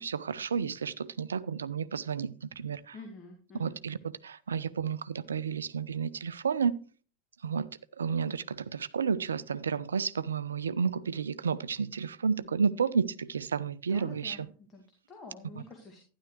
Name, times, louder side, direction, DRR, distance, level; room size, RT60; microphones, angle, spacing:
voice 1, 0.0-2.9 3.6-4.0 4.2-6.7 7.4-7.7 8.0-14.4, right 6 dB, 70° right, 0.4 m, -31 dB
voice 2, 2.9-3.8 13.9-16.0, left 3 dB, 25° left, 2.0 m, -48 dB
12.0 x 10.0 x 3.1 m
figure-of-eight pair, 90°, 0 cm